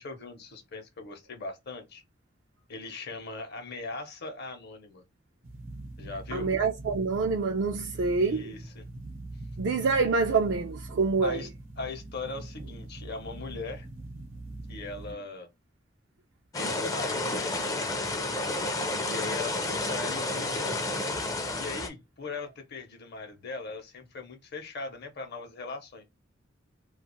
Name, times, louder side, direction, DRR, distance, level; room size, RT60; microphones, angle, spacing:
voice 1, 0.0-2.0 2.7-5.0 6.0-6.5 8.2-8.8 11.2-11.5 11.8-13.9 14.7-15.5 16.5-18.4 19.0-20.8 21.5-26.0, left 3 dB, 55° left, 0.7 m, -39 dB
sound 1, 5.4-15.1, right 2 dB, 90° right, 0.8 m, -42 dB
voice 2, 6.3-8.5 9.6-11.4, right 4 dB, 60° right, 0.4 m, -26 dB
sound 2, 16.5-21.9, left 2 dB, 15° left, 0.4 m, -30 dB
2.4 x 2.3 x 2.9 m
head